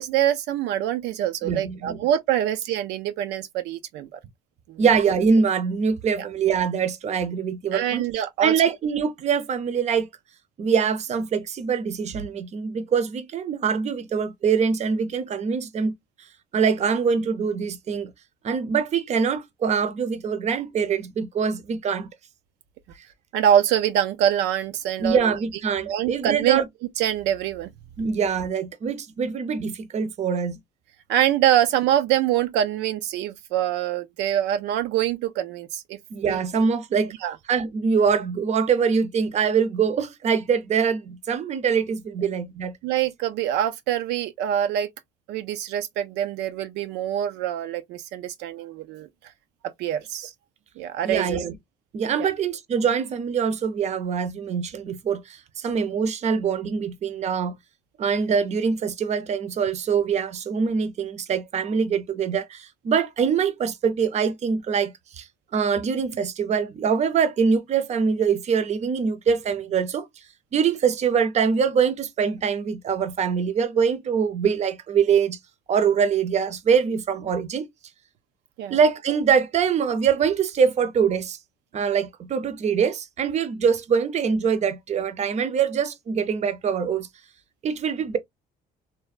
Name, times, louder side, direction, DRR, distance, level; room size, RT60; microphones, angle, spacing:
voice 1, 0.0-4.2 4.7-4.9 6.2-6.3 7.7-8.5 23.3-25.3 25.9-26.6 27.0-27.7 31.1-36.0 36.3-36.4 37.2-37.4 42.8-44.9 45.3-49.1 49.8-50.3 50.8-51.4 52.2-52.3 78.6-78.8, right 10 dB, 85° right, 0.4 m, -24 dB
voice 2, 1.4-2.0 4.8-10.1 10.6-15.9 16.5-18.1 18.4-22.1 25.0-26.7 28.0-30.6 36.1-37.1 37.5-42.8 51.0-51.6 51.9-57.5 58.0-65.3 65.5-70.1 70.5-75.4 75.7-77.7 78.7-81.4 81.7-87.1 87.6-88.2, right 6 dB, 40° right, 0.6 m, -24 dB
3.3 x 2.1 x 2.3 m
cardioid pair, 110°, 17 cm